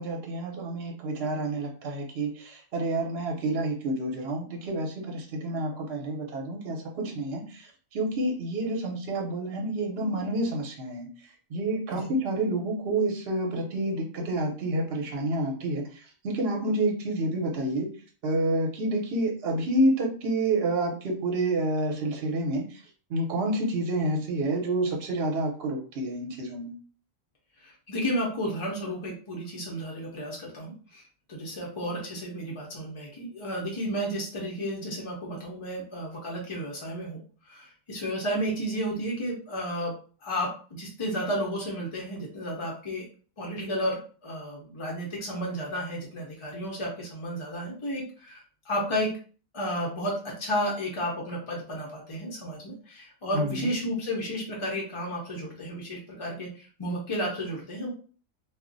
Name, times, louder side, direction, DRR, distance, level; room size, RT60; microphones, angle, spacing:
voice 1, 0.0-11.1 11.5-17.9 18.2-22.8 23.1-26.7 53.3-53.7, right 1 dB, 55° right, 0 dB, 0.9 m, -29 dB
voice 2, 27.6-31.0 31.3-37.2 37.5-39.9 40.2-43.1 43.4-49.1 49.5-57.9, equal, 45° left, -2 dB, 0.4 m, -32 dB
2.4 x 2.1 x 3.8 m, 0.40 s
omnidirectional pair, 1.4 m